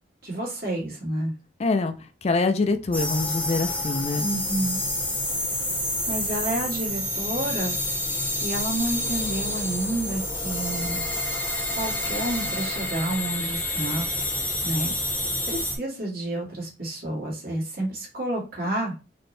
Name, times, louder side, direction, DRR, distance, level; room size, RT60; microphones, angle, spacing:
voice 1, 0.2-1.3 4.2-4.8 6.1-7.8 8.1-11.0 11.8-14.0 14.6-14.9 15.5-18.9, right 1 dB, 60° right, -2 dB, 1.9 m, -30 dB
voice 2, 1.6-1.9 2.2-4.3, left 3 dB, 35° left, 8 dB, 0.4 m, -24 dB
sound 1, 2.9-15.8, left 1 dB, 10° left, 0.8 m, -28 dB
4.2 x 2.8 x 3.2 m, 0.31 s
head